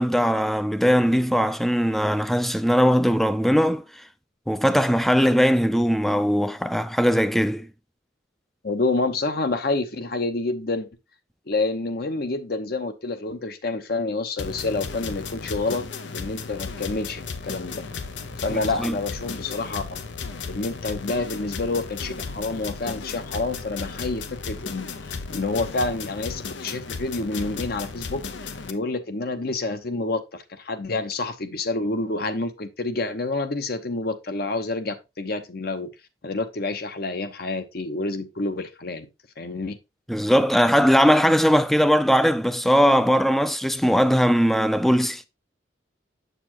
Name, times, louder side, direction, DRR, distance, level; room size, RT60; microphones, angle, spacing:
voice 1, 0.0-3.8 4.5-7.7 18.5-18.9 40.1-45.3, equal, ahead, 0.4 m, -20 dB
voice 2, 8.6-10.9 11.5-15.8 16.1-17.8 18.4-20.1 20.5-35.9 36.2-39.1 39.4-39.8, left 3 dB, 55° left, 0.9 m, -28 dB
sound 1, 14.4-28.7, left 5 dB, 90° left, 0.7 m, -35 dB
7.4 x 6.8 x 2.9 m
head